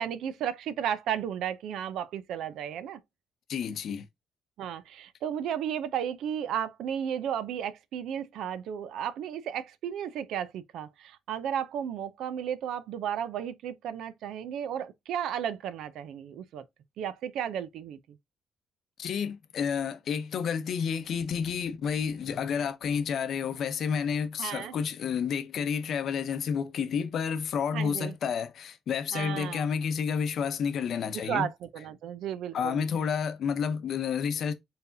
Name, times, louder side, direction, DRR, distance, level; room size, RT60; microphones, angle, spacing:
voice 1, 0.0-3.0 4.6-16.6 17.0-18.0 24.4-24.7 27.7-28.1 29.1-29.7 31.2-32.8, right 9 dB, 80° right, 0.4 m, -34 dB
voice 2, 3.5-4.0 19.0-31.5 32.5-34.5, left 7 dB, 65° left, 0.6 m, -30 dB
4.4 x 3.4 x 2.6 m
cardioid pair, 90°, 0 cm